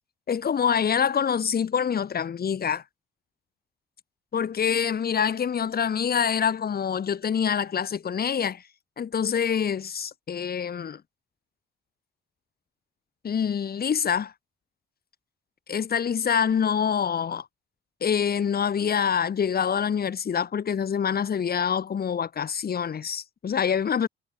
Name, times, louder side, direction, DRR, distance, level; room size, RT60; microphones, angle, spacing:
voice 1, 0.3-2.8 4.3-8.6 9.0-11.0 13.2-14.3 15.7-17.5 18.0-24.1, left 7 dB, 50° left, 5.5 m, -26 dB
cardioid pair, 90°, 20 cm